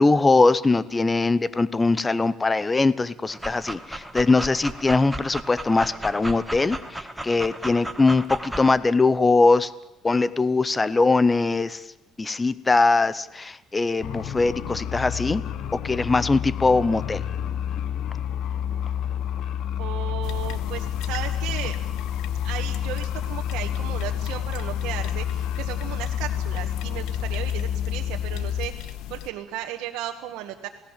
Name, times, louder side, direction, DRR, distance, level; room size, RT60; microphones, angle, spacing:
voice 1, 0.0-9.7 10.0-11.8 12.2-15.4 15.7-17.2, left 3 dB, 15° left, 18 dB, 0.8 m, -21 dB
Dog, 3.3-8.7, right 1 dB, 5° right, 1.6 m, -35 dB
sound 1, 14.0-28.7, left 9 dB, 60° left, 1.5 m, -29 dB
voice 2, 19.8-21.8 22.4-30.7, right 12 dB, 80° right, 2 dB, 1.7 m, -35 dB
sound 2, 20.2-29.3, left 13 dB, 80° left, 1.0 m, -38 dB
28.0 x 18.0 x 7.5 m, 0.96 s
cardioid pair, 135°, 0 cm